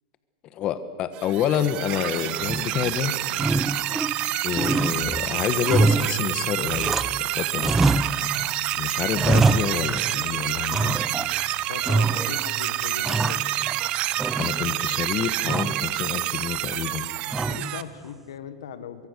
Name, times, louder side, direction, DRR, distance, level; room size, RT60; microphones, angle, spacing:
voice 1, 0.5-3.1 4.4-6.9 7.2-7.7 8.8-11.0 14.4-17.1, left 9 dB, 40° left, 12 dB, 1.3 m, -28 dB
sound 1, 1.1-17.8, right 15 dB, 45° right, 0.9 m, -28 dB
sound 2, 2.4-3.0 3.3-4.3 4.5-7.3 7.6-8.6 8.9-10.3 10.7-11.4 11.8-12.5 12.8-13.9 14.2-14.9 15.5-15.9 17.3-17.8, right 3 dB, 10° right, 0.6 m, -25 dB
voice 2, 11.7-13.5 17.5-19.1, left 8 dB, 85° left, 12 dB, 1.4 m, -38 dB
23.5 x 23.0 x 6.7 m, 2.3 s
supercardioid pair, 125°, 2 cm